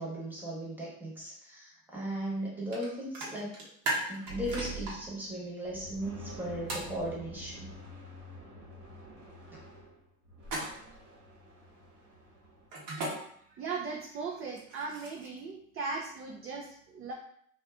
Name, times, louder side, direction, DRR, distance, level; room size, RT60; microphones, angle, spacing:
voice 1, 0.0-3.5 4.1-7.7, right 1 dB, 5° right, -5 dB, 1.1 m, -37 dB
sound 1, 2.7-2.8 3.1-4.9 6.7-6.9 10.4-11.0 12.7-13.1 14.5-15.4, right 2 dB, 55° right, 1.0 m, -35 dB
sound 2, 4.3-5.3 5.6-12.7, right 2 dB, 85° right, 1.1 m, -47 dB
voice 2, 13.5-17.1, right 4 dB, 35° right, -1 dB, 0.4 m, -38 dB
2.5 x 2.4 x 2.3 m, 0.68 s
hypercardioid pair, 75°, 43 cm